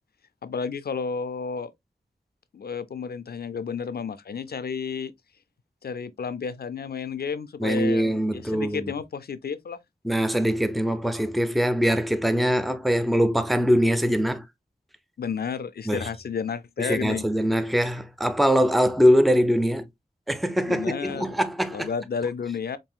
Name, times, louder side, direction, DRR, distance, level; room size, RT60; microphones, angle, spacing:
voice 1, 0.4-1.7 2.5-5.1 5.8-9.8 15.2-17.2 20.7-21.3 21.7-22.8, left 6 dB, 70° left, 0.4 m, -31 dB
voice 2, 7.6-8.9 10.0-14.5 15.9-16.1 16.8-19.9 20.3-21.9, equal, ahead, 0.5 m, -22 dB
5.5 x 2.6 x 2.2 m
wide cardioid pair, 75°, 17 cm